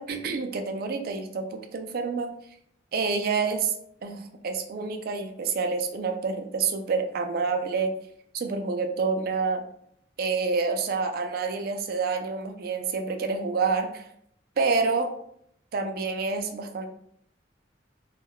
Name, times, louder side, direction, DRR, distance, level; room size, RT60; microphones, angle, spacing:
voice 1, 0.0-2.3 2.9-3.7 4.0-7.9 8.3-9.6 10.2-14.1 14.6-15.1 15.7-16.9, right 4 dB, 55° right, 5 dB, 0.4 m, -28 dB
3.4 x 2.2 x 2.2 m, 0.71 s
head